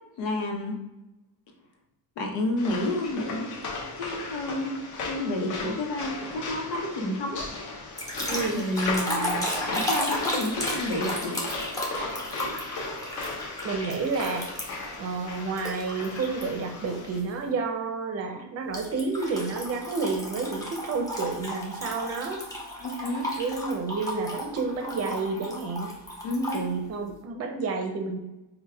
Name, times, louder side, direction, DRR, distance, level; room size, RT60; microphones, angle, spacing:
voice 1, 0.2-0.8 2.2-4.7 5.0-7.5 8.5-11.4 22.8-23.3 26.2-26.7, left 1 dB, 85° left, 1 dB, 1.1 m, -30 dB
sound 1, 2.6-17.2, left 3 dB, 45° left, 0.8 m, -36 dB
sound 2, 8.0-14.9 15.6-16.4 16.9-17.2 18.7-26.7, equal, 10° left, 0.6 m, -34 dB
voice 2, 8.3-8.6 13.6-14.5 15.0-22.4 23.4-25.9 26.5-28.2, right 4 dB, 35° right, 4 dB, 0.6 m, -30 dB
5.4 x 2.3 x 3.3 m, 1.0 s
cardioid pair, 165°, 43 cm